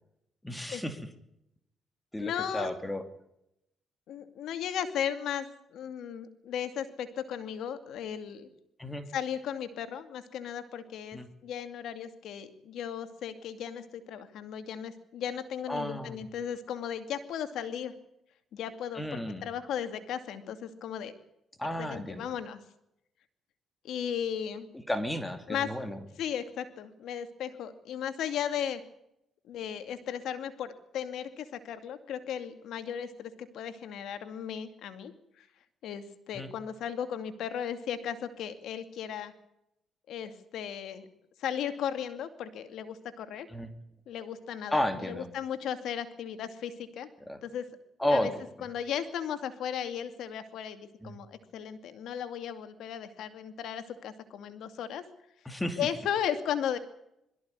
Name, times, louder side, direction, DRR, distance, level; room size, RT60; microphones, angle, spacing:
voice 1, 0.4-1.0 2.1-3.0 8.8-9.1 11.1-11.3 15.7-16.2 18.9-19.5 21.6-22.2 24.7-26.0 36.3-36.5 43.5-43.7 44.7-45.3 47.3-47.4 48.0-48.3 51.0-51.1 55.5-55.8, left 1 dB, 10° left, 8 dB, 2.7 m, -32 dB
voice 2, 2.2-2.7 4.1-8.5 9.1-17.9 18.5-21.1 21.8-22.6 23.8-24.7 25.5-25.7 26.2-28.8 29.5-35.1 35.4-35.5 35.8-39.3 40.1-41.1 41.4-43.5 44.1-47.1 47.4-47.7 48.1-48.3 48.6-55.0 55.8-56.8, left 9 dB, 80° left, 9 dB, 2.4 m, -36 dB
23.0 x 14.5 x 9.7 m, 0.80 s
cardioid pair, 90°, 0 cm